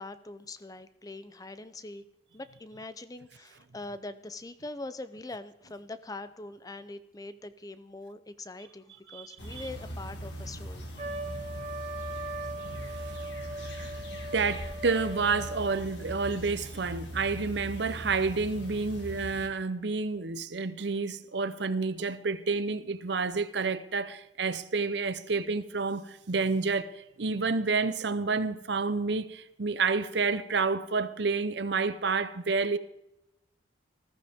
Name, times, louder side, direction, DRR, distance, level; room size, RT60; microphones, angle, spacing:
voice 1, 0.0-2.0 2.3-10.9, left 2 dB, 20° left, 0.5 m, -43 dB
sound 1, 9.4-19.5, equal, 65° left, 2.1 m, -41 dB
Trumpet, 11.0-16.0, right 2 dB, 35° right, 1.1 m, -39 dB
voice 2, 13.6-14.0 14.3-32.8, right 4 dB, 60° right, 0.7 m, -29 dB
19.5 x 14.5 x 3.6 m
head